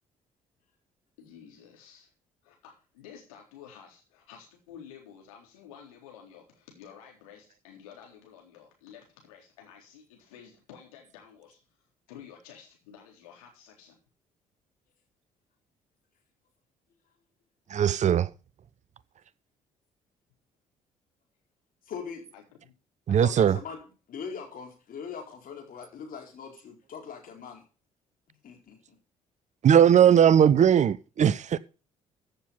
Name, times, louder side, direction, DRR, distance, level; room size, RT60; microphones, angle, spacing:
voice 1, 1.2-2.1 2.4-11.6 12.1-14.0 22.3-22.7 23.1-23.5, left 8 dB, 75° left, 3.7 m, -51 dB
voice 2, 17.7-18.3 23.1-23.6 29.6-31.6, right 9 dB, 40° right, 0.8 m, -19 dB
voice 3, 21.9-22.3 23.2-23.8 24.1-27.6 28.4-29.0, left 6 dB, 50° left, 4.3 m, -41 dB
15.0 x 6.8 x 5.5 m
figure-of-eight pair, 45°, 18 cm